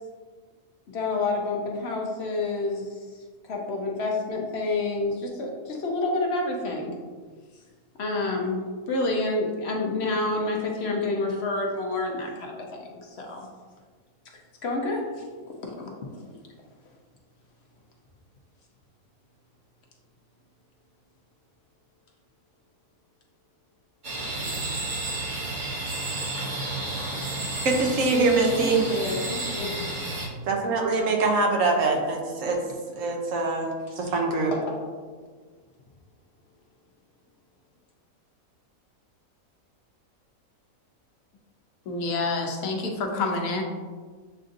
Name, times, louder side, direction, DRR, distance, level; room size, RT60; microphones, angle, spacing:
voice 1, 0.9-2.9 3.4-6.9 8.0-8.6 8.9-13.5 14.6-15.0 15.6-16.2 28.5-29.9 34.5-34.8, left 2 dB, 60° left, 0 dB, 0.8 m, -28 dB
sound 1, 24.0-30.3, right 2 dB, 40° right, 0.8 m, -31 dB
voice 2, 27.6-28.8 30.5-32.6 33.0-34.5, right 3 dB, 70° right, 1 dB, 1.0 m, -24 dB
voice 3, 41.9-43.6, left 3 dB, 80° left, 2 dB, 1.1 m, -28 dB
7.5 x 2.6 x 2.5 m, 1.5 s
omnidirectional pair, 1.5 m